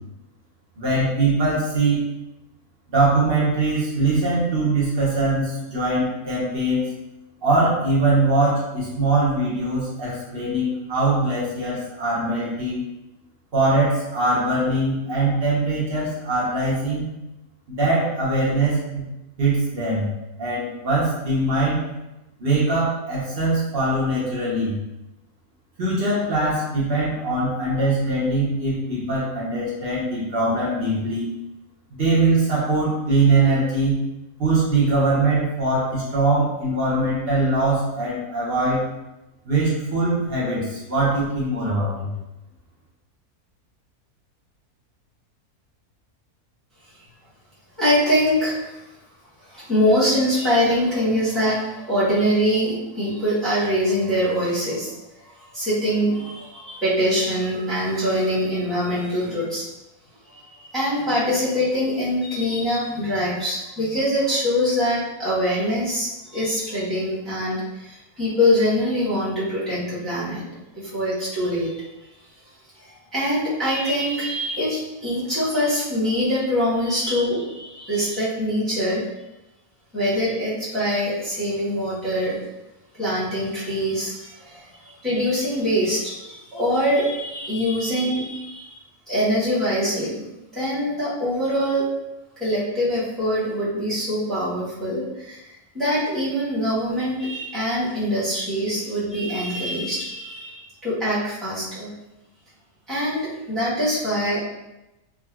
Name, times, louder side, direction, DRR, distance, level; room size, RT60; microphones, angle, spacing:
voice 1, 0.8-2.0 2.9-6.9 7.4-12.8 13.5-17.1 17.7-19.0 19.4-20.1 20.4-21.8 22.4-24.8 25.8-31.3 31.9-34.0 34.4-38.8 39.4-42.1, right 2 dB, 50° right, -7 dB, 0.8 m, -22 dB
voice 2, 47.8-48.7 49.4-54.9 55.2-59.6 60.2-70.4 70.7-71.9 72.8-79.0 79.9-82.4 82.9-88.7 89.1-91.9 92.4-95.4 95.7-101.9 102.9-104.4, equal, ahead, -11 dB, 0.9 m, -24 dB
3.7 x 2.1 x 2.3 m, 0.96 s
omnidirectional pair, 1.6 m